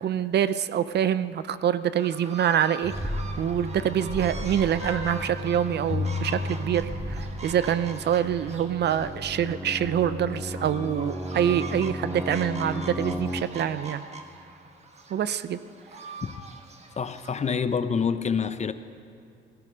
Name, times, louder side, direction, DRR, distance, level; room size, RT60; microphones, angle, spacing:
voice 1, 0.0-14.0 15.1-15.6, right 9 dB, 60° right, 14 dB, 0.5 m, -26 dB
sound 1, 1.9-17.5, right 3 dB, 35° right, 1.5 m, -43 dB
sound 2, 2.8-13.4, equal, 15° right, 2.1 m, -35 dB
sound 3, 5.9-7.7, left 6 dB, 65° left, 2.5 m, -34 dB
voice 2, 17.0-18.7, left 6 dB, 35° left, 12 dB, 0.7 m, -27 dB
16.5 x 13.5 x 5.1 m, 2.6 s
cardioid pair, 90°, 20 cm